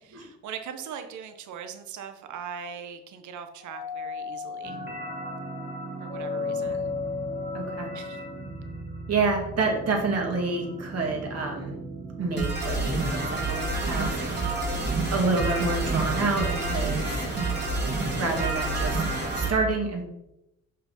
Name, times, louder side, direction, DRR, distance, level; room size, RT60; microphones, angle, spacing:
voice 1, 0.1-4.8 6.0-6.9 7.9-8.2, right 7 dB, 75° right, 7 dB, 0.9 m, -40 dB
Doorbell, 3.6-8.4, left 5 dB, 20° left, 1.8 m, -35 dB
sound 1, 4.6-19.5, right 2 dB, 35° right, 2.4 m, -31 dB
voice 2, 7.5-7.9 9.1-11.8 12.2-14.1 15.1-17.3 18.1-19.0 19.3-20.0, right 3 dB, 55° right, 1 dB, 2.3 m, -28 dB
5.6 x 5.5 x 5.6 m, 0.88 s
cardioid pair, 90°, 30 cm